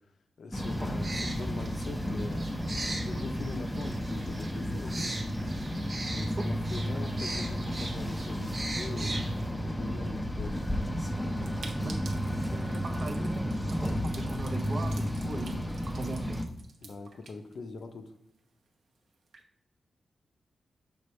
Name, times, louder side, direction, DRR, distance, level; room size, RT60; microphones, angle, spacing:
voice 1, 0.4-5.1 6.1-9.3 9.6-10.6 16.8-18.1, left 3 dB, 55° left, 7 dB, 0.6 m, -42 dB
sound 1, 0.5-16.5, equal, 5° left, 0.5 m, -32 dB
sound 2, 0.6-9.5, right 2 dB, 25° right, 1.0 m, -41 dB
voice 2, 6.9-7.3 11.8-12.0 12.5-16.4, right 2 dB, 40° right, 7 dB, 0.6 m, -39 dB
sound 3, 11.4-18.1 18.4-18.5 18.7-18.8 19.1-19.4, right 4 dB, 75° right, 0.9 m, -51 dB
6.8 x 5.3 x 3.2 m, 0.78 s
wide cardioid pair, 165°, 0 cm